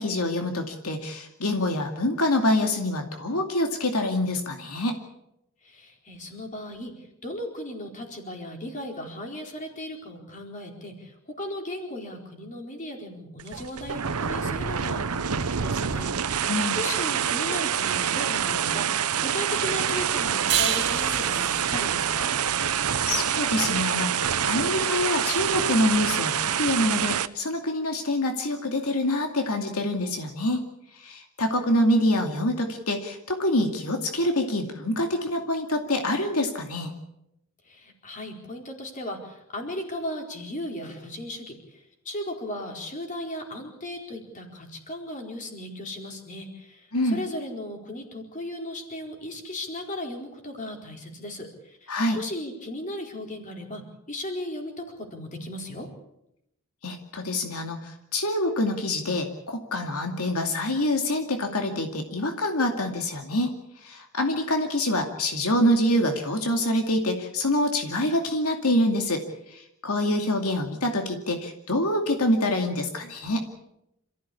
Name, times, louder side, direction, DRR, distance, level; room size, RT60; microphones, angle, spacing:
voice 1, 0.0-4.9 16.5-16.8 22.7-30.6 30.9-36.9 46.9-47.2 51.9-52.2 56.8-63.5 63.8-69.2 69.5-73.4, left 1 dB, 80° left, 4 dB, 2.5 m, -26 dB
voice 2, 5.6-6.9 7.2-22.3 37.7-53.8 54.1-55.9, left 1 dB, 35° left, 2 dB, 4.4 m, -36 dB
sound 1, 13.4-27.3, right 8 dB, 85° right, 0.9 m, -26 dB
sound 2, 20.5-23.7, right 9 dB, 50° right, 2.2 m, -30 dB
27.5 x 15.0 x 8.5 m, 0.83 s
head